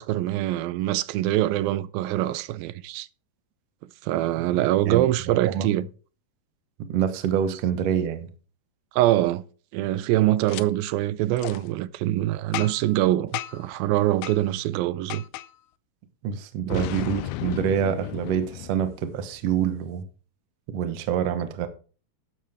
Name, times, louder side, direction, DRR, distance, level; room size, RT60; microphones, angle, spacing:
voice 1, 0.0-3.1 4.0-5.9 8.9-9.4 9.7-15.2 16.7-16.9, right 14 dB, 85° right, 2.4 m, -24 dB
voice 2, 4.9-5.7 6.8-8.3 16.2-20.0 20.7-21.7, right 8 dB, 65° right, 1.6 m, -26 dB
Boom, 10.5-10.6 11.4-11.6 12.5-12.9 13.3-13.7 14.2-14.4 15.1-15.5 16.7-19.4, left 15 dB, 85° left, 1.8 m, -34 dB
12.0 x 8.5 x 3.4 m
omnidirectional pair, 4.2 m